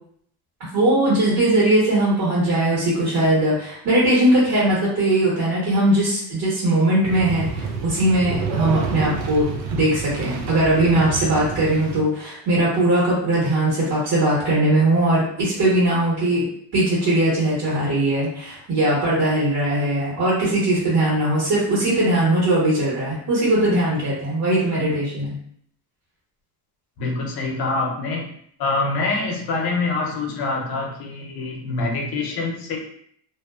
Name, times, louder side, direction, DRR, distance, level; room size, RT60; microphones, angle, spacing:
voice 1, 0.7-16.5 16.7-25.4, right 1 dB, 50° right, -7 dB, 1.3 m, -20 dB
sound 1, 7.0-12.0, right 4 dB, 90° right, 0.6 m, -29 dB
voice 2, 27.0-28.2 28.6-32.8, left 3 dB, 60° left, 1 dB, 0.8 m, -25 dB
2.6 x 2.2 x 2.3 m, 0.64 s
supercardioid pair, 95°, 43 cm